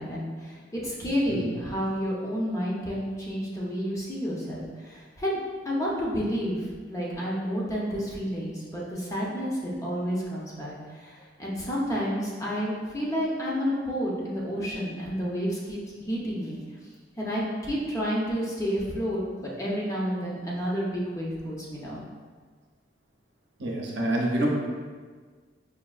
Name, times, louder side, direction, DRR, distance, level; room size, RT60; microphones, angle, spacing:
voice 1, 0.0-5.4 5.6-6.6 6.9-16.6 17.2-22.0, equal, 15° left, -5 dB, 0.6 m, -30 dB
voice 2, 23.6-24.5, right 1 dB, 65° right, -2 dB, 0.7 m, -26 dB
5.1 x 2.6 x 2.4 m, 1.5 s
head